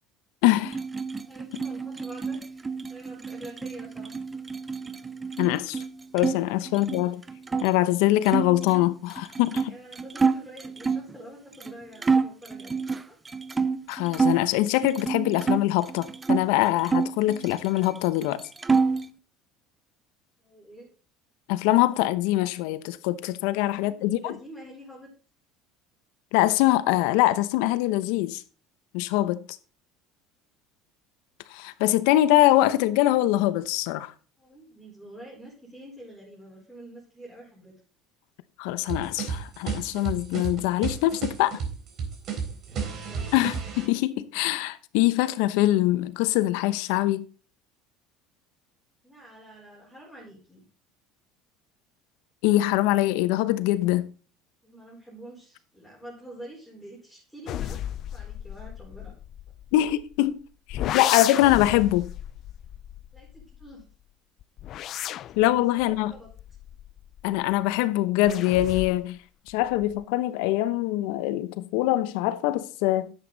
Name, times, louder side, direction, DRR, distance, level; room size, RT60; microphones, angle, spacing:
voice 1, 0.4-0.8 5.4-5.8 6.1-7.2 7.6-9.7 13.9-18.4 21.5-24.3 26.3-28.4 28.9-29.4 31.5-34.1 38.6-41.6 43.3-47.3 52.4-54.1 59.7-60.4 60.7-62.1 65.3-66.1 67.2-69.2 69.5-73.1, left 15 dB, 80° left, 0.9 m, -23 dB
sound 1, 0.6-6.4 6.7-7.7 8.3-11.1 11.6-11.7 12.0-14.4 14.8-16.5 16.8-18.0 18.2-19.1, right 4 dB, 15° right, 0.6 m, -28 dB
voice 2, 1.2-4.1 9.5-13.2 20.4-20.9 23.6-25.1 34.4-37.7 42.2-42.4 42.7-43.4 49.0-50.7 54.6-57.8 58.1-59.1 59.7-59.8 63.1-63.8 65.6-66.3, right 1 dB, ahead, 4.6 m, -47 dB
sound 2, 38.9-43.9, right 6 dB, 50° right, 3.7 m, -32 dB
sound 3, 57.5-60.2 60.7-63.8 64.4-67.4 68.3-69.2 69.5-70.0, left 12 dB, 50° left, 0.4 m, -34 dB
11.0 x 8.2 x 4.0 m
cardioid pair, 125°, 0 cm